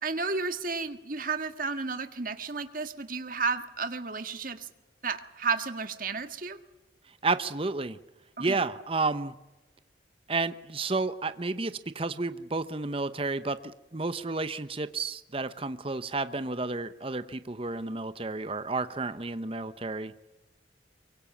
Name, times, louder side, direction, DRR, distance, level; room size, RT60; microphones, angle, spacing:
voice 1, 0.0-4.7 5.0-6.6 8.4-8.6, right 4 dB, 45° right, 9 dB, 1.7 m, -32 dB
voice 2, 7.2-8.0 8.4-9.3 10.3-13.6 13.9-20.1, right 3 dB, 30° right, 12 dB, 0.8 m, -31 dB
24.0 x 24.0 x 7.2 m, 1.1 s
head